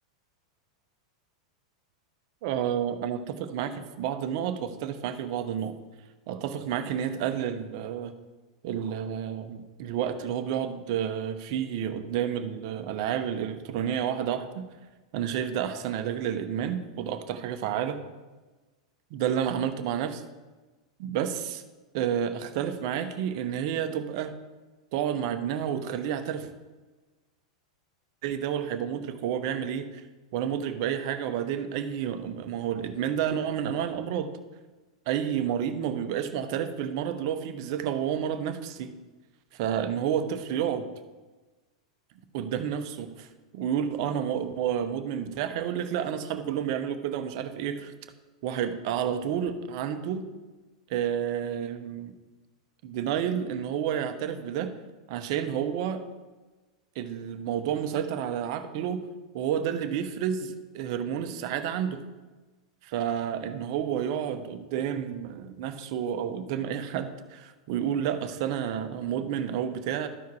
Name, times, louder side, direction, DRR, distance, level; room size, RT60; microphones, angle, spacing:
voice 1, 2.4-5.7 6.3-8.1 8.6-14.7 15.1-18.0 19.1-20.2 21.0-21.6 21.9-24.3 24.9-26.5 28.2-30.0 30.3-34.3 35.1-38.9 39.5-40.9 42.3-43.3 43.5-47.9 48.4-50.3 50.9-52.1 52.8-54.7 55.1-56.0 56.9-59.1 59.3-62.0 62.8-70.1, right 9 dB, 55° right, 9 dB, 0.8 m, -30 dB
12.5 x 4.7 x 4.7 m, 1.2 s
hypercardioid pair, 100°, 3 cm